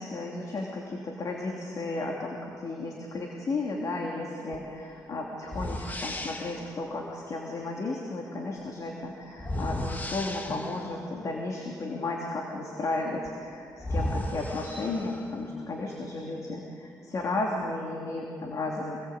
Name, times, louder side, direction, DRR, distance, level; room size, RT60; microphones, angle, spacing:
voice 1, 0.0-19.0, left 2 dB, 50° left, -1 dB, 3.0 m, -34 dB
sound 1, 4.5-4.7 5.5-6.7 9.4-11.0 13.3-13.4 13.8-15.4, left 1 dB, 25° left, 1.7 m, -34 dB
26.0 x 19.5 x 8.2 m, 2.6 s
cardioid pair, 110°, 8 cm